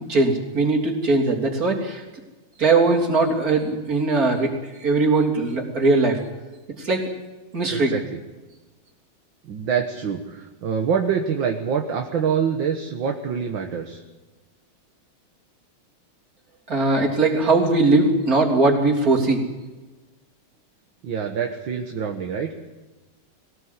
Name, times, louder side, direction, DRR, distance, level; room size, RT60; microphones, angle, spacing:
voice 1, 0.0-2.0 2.6-4.5 4.8-6.2 6.8-7.1 7.5-7.9 16.7-19.4, right 3 dB, 40° right, 0 dB, 3.8 m, -20 dB
voice 2, 7.7-8.2 9.4-14.0 21.0-22.5, right 7 dB, 65° right, 3 dB, 2.1 m, -25 dB
22.5 x 18.5 x 8.3 m, 1.2 s
omnidirectional pair, 2.3 m